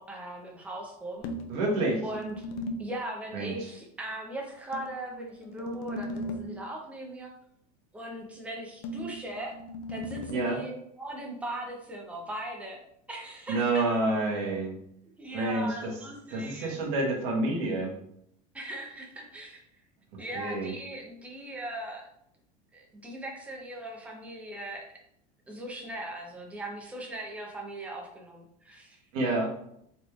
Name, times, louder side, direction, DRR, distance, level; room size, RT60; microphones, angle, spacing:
voice 1, 0.0-1.3 2.0-2.5 2.8-7.3 7.9-9.5 9.9-10.7 11.0-12.8 13.1-13.9 15.2-16.8 18.5-19.6 20.2-22.1 22.7-24.9 25.5-29.0, right 1 dB, 5° right, 0 dB, 0.5 m, -39 dB
sound 1, 1.2-3.0 4.7-6.7 8.8-10.3, left 1 dB, 60° left, 0.5 m, -38 dB
voice 2, 1.5-2.0 3.3-3.7 10.3-10.6 13.5-14.8 15.3-16.0 16.3-17.9 20.3-20.7 29.1-29.5, right 2 dB, 65° right, -1 dB, 1.2 m, -28 dB
4.1 x 3.1 x 2.3 m, 0.73 s
supercardioid pair, 155°, 20 cm